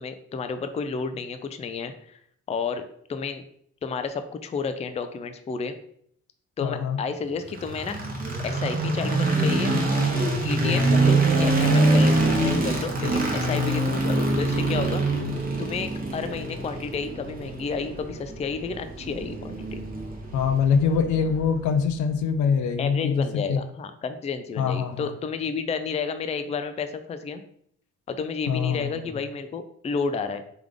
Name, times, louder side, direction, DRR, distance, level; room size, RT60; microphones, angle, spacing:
voice 1, 0.0-2.2 2.5-3.4 3.8-5.7 6.6-8.0 8.4-9.8 10.4-15.1 15.6-19.8 22.8-27.4 28.1-30.4, left 5 dB, 20° left, 9 dB, 0.4 m, -31 dB
voice 2, 6.6-7.0 20.3-23.6 24.6-25.1 28.5-29.1, left 6 dB, 75° left, 7 dB, 0.6 m, -24 dB
sound 1, 7.5-21.6, right 2 dB, 30° right, 0.9 m, -24 dB
3.5 x 3.4 x 3.6 m, 0.66 s
cardioid pair, 90°, 30 cm